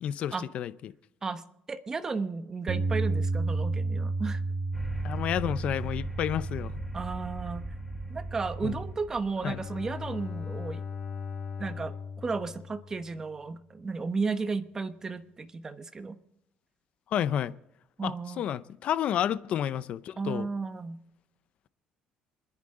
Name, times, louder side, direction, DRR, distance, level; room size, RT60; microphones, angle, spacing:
voice 1, 0.0-0.9 5.0-6.8 8.6-8.8 9.4-9.6 17.1-17.5 18.0-20.5, left 10 dB, 55° left, 0.6 m, -30 dB
voice 2, 1.2-4.4 6.9-7.8 8.1-10.8 11.6-16.2 18.0-18.5 20.2-21.0, right 4 dB, 20° right, 1.0 m, -34 dB
Bass guitar, 2.7-8.9, right 3 dB, 45° right, 1.1 m, -32 dB
sound 1, 4.7-11.2, right 1 dB, 5° right, 2.4 m, -42 dB
Bowed string instrument, 9.4-13.3, left 6 dB, 70° left, 4.2 m, -39 dB
27.5 x 10.5 x 3.7 m
cardioid pair, 135°, 3 cm